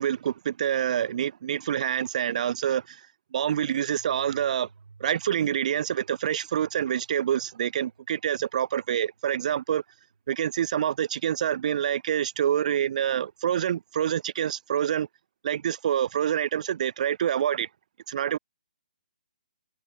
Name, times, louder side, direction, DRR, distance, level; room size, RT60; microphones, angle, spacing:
voice 1, 0.0-3.0 3.3-4.7 5.0-9.8 10.3-15.1 15.4-17.7 18.1-18.4, right 9 dB, 50° right, 0.4 m, -27 dB
sound 1, 3.3-11.7, right 4 dB, 85° right, 3.4 m, -57 dB
hypercardioid pair, 145°, 5 cm